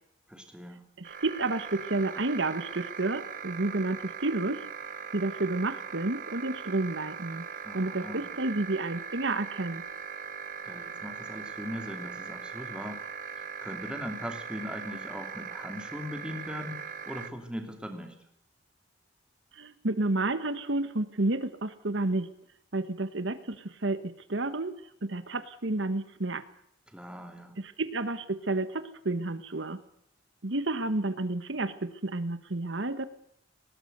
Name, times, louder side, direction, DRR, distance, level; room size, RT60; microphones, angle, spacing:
voice 1, 0.3-0.8 7.6-8.3 10.6-13.0 13.6-18.1 26.9-27.6, equal, 5° right, 5 dB, 2.9 m, -40 dB
sound 1, 1.0-17.3, right 7 dB, 45° right, 1.2 m, -40 dB
voice 2, 1.0-4.6 5.1-7.4 7.7-9.8 19.5-22.3 22.7-24.7 25.0-26.4 27.6-29.8 30.4-33.1, right 2 dB, 75° right, 12 dB, 1.3 m, -30 dB
20.0 x 18.0 x 8.0 m, 0.74 s
head